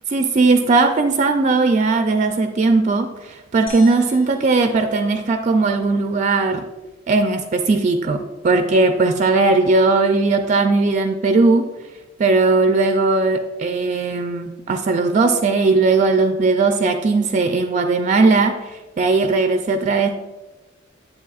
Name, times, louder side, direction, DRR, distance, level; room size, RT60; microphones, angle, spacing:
voice 1, 0.1-6.6 7.1-11.7 12.2-20.1, right 3 dB, 35° right, 6 dB, 0.4 m, -18 dB
sound 1, 3.7-6.1, left 4 dB, 85° left, 1.6 m, -42 dB
8.3 x 8.0 x 2.4 m, 1.2 s
head